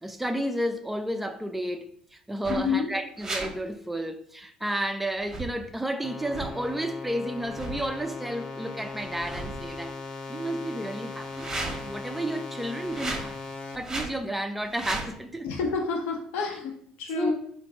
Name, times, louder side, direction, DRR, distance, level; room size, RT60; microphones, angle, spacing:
voice 1, 0.0-9.9 10.3-13.4 13.8-15.5 17.1-17.3, right 1 dB, 5° right, 0.4 m, -32 dB
sound 1, 2.4-2.7 3.2-3.5 5.2-5.5 6.3-6.5 7.5-7.9 9.0-9.8 11.2-11.9 12.8-13.3 13.8-14.2 14.6-15.1, right 2 dB, 20° right, 0.8 m, -35 dB
voice 2, 2.5-2.9 15.4-16.7 17.0-17.3, left 5 dB, 80° left, 0.8 m, -28 dB
sound 2, 6.0-13.8, left 3 dB, 30° left, 0.8 m, -38 dB
3.5 x 2.5 x 4.0 m
cardioid pair, 105°, 3 cm